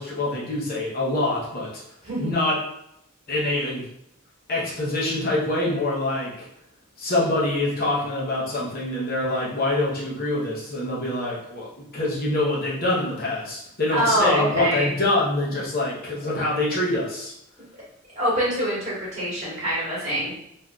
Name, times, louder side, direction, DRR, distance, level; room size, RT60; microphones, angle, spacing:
voice 1, 0.0-1.8 2.2-2.6 3.3-3.8 4.5-6.5 7.0-11.7 11.9-17.3, left 2 dB, 45° left, -5 dB, 0.8 m, -25 dB
voice 2, 13.9-14.9 18.1-20.3, equal, 35° right, -7 dB, 1.4 m, -24 dB
3.6 x 2.6 x 2.3 m, 0.78 s
head